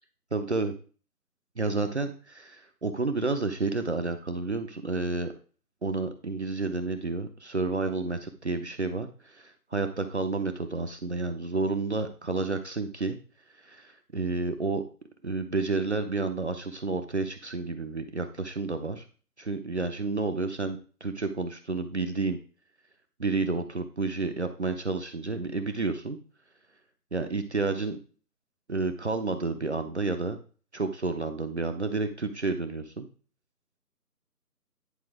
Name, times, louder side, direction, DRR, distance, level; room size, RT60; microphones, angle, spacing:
voice 1, 0.3-0.7 1.6-5.3 5.8-13.2 13.5-14.8 15.2-19.1 19.4-22.4 23.2-26.2 27.1-28.0 28.7-30.4 30.7-33.1, right 3 dB, 45° right, 7 dB, 0.8 m, -30 dB
10.0 x 4.6 x 4.7 m, 0.38 s
figure-of-eight pair, 170°, 48 cm